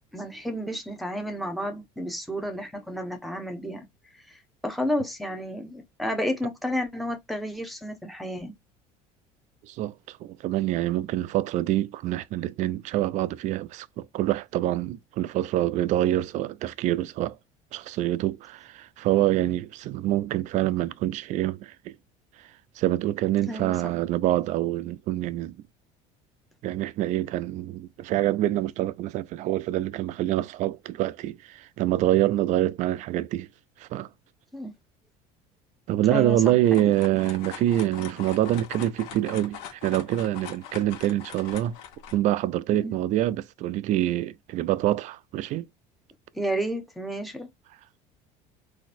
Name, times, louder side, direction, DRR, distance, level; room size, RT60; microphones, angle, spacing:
voice 1, 0.1-3.9 4.3-4.4 4.6-8.5 23.5-23.9 34.5-34.7 36.1-36.5 42.7-43.0 46.3-47.5, equal, ahead, 0.9 m, -31 dB
voice 2, 9.6-17.4 17.7-21.9 22.8-25.6 26.6-33.5 33.8-34.1 35.9-41.7 42.1-45.7, right 14 dB, 50° right, 0.4 m, -26 dB
sound 1, 36.4-42.2, left 9 dB, 75° left, 1.1 m, -42 dB
3.9 x 2.6 x 2.5 m
cardioid pair, 130°, 16 cm